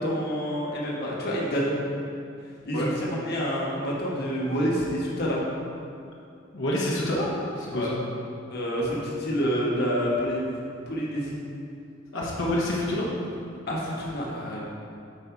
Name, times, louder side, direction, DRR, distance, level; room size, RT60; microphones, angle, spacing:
voice 1, 0.0-1.8 2.6-5.4 7.7-7.9 8.5-11.4 13.7-14.6, equal, 55° left, -4 dB, 1.4 m, -28 dB
voice 2, 6.5-8.0 12.1-13.1, left 1 dB, 85° left, -5 dB, 1.1 m, -27 dB
8.8 x 4.1 x 4.7 m, 2.5 s
head